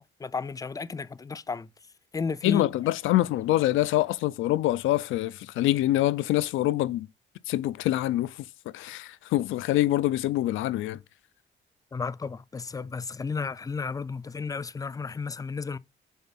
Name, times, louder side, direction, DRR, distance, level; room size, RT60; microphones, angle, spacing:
voice 1, 0.0-1.7 2.1-2.7 11.9-15.8, left 4 dB, 20° left, 0.4 m, -33 dB
voice 2, 2.4-7.1 7.5-8.3 8.7-11.0, left 15 dB, 85° left, 0.5 m, -25 dB
7.2 x 3.8 x 4.1 m
cardioid pair, 90°, 20 cm